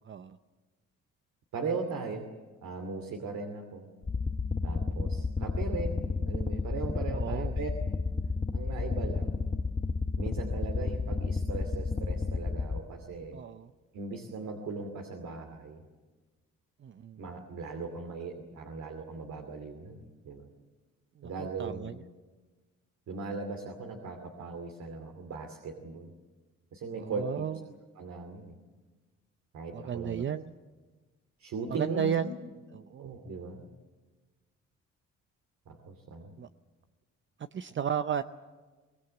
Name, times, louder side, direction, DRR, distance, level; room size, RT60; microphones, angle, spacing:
voice 1, 0.0-0.4 7.1-7.6 13.3-13.7 16.8-17.2 21.2-22.0 27.0-27.6 29.7-30.5 31.7-32.3 32.7-33.1 36.4-36.5 37.4-38.2, right 8 dB, 40° right, 10 dB, 0.7 m, -34 dB
voice 2, 1.5-2.3 2.6-3.9 4.6-7.7 8.5-9.4 10.2-13.4 13.9-15.8 17.2-20.4 21.2-21.9 23.1-26.1 26.7-27.6 28.0-28.6 29.5-30.3 31.4-32.3 33.0-33.6 35.7-36.3, right 4 dB, 70° right, 4 dB, 2.6 m, -38 dB
sound 1, 4.0-12.8, left 4 dB, 20° left, 1.1 m, -31 dB
23.5 x 19.5 x 8.0 m, 1.3 s
cardioid pair, 90°, 30 cm